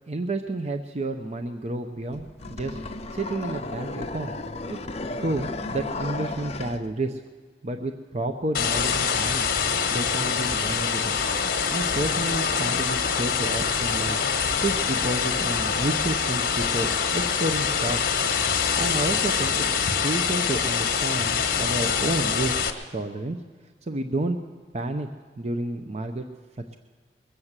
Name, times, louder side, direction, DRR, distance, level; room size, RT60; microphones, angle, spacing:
voice 1, 0.1-2.8 3.1-4.4 4.7-4.9 5.2-7.2 7.6-11.2 11.7-14.2 14.6-18.2 18.8-19.7 20.0-22.6 22.9-23.4 23.8-24.4 24.7-25.1 25.4-26.2, right 2 dB, 40° right, 6 dB, 0.7 m, -30 dB
sound 1, 2.1-6.8, left 2 dB, 40° left, 0.8 m, -34 dB
sound 2, 8.5-22.7, left 6 dB, 55° left, 1.2 m, -25 dB
22.0 x 7.4 x 8.1 m, 1.6 s
head